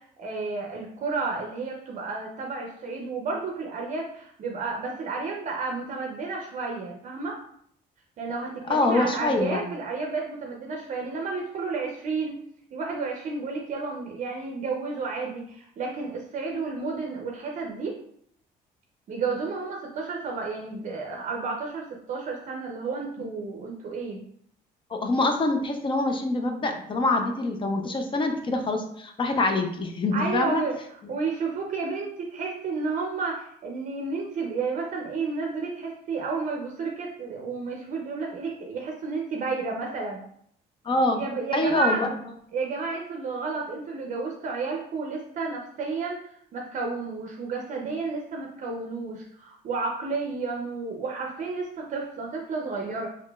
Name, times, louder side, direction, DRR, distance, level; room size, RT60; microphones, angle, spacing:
voice 1, 0.0-7.4 8.2-12.4 12.7-17.9 19.1-24.2 30.1-30.8 31.1-40.2 41.1-42.1 42.5-46.2 46.5-53.1, right 4 dB, 45° right, 0 dB, 0.5 m, -31 dB
voice 2, 8.7-9.7 23.2-23.3 24.9-30.6 40.8-41.2 41.5-42.1, left 2 dB, 30° left, 4 dB, 0.5 m, -25 dB
3.9 x 3.1 x 2.2 m, 0.67 s
cardioid pair, 110°, 17 cm